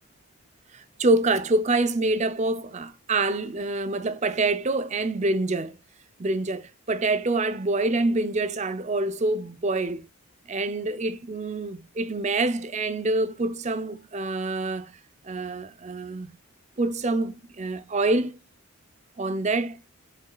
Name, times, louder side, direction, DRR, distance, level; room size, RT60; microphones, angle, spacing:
voice 1, 0.7-5.8 6.2-10.1 10.5-14.9 15.2-16.3 16.8-18.4 19.2-19.8, right 2 dB, 30° right, 0.5 m, -26 dB
7.6 x 6.2 x 2.3 m
head